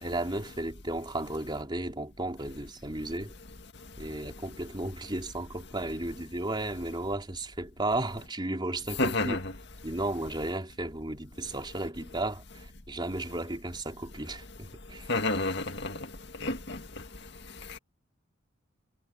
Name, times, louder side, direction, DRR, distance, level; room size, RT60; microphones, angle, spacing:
voice 1, 0.0-3.3 4.0-9.4 9.8-15.1, right 2 dB, 25° right, 3.8 m, -34 dB
voice 2, 9.0-9.4 15.1-16.0 16.4-16.8, left 2 dB, 55° left, 2.0 m, -29 dB
head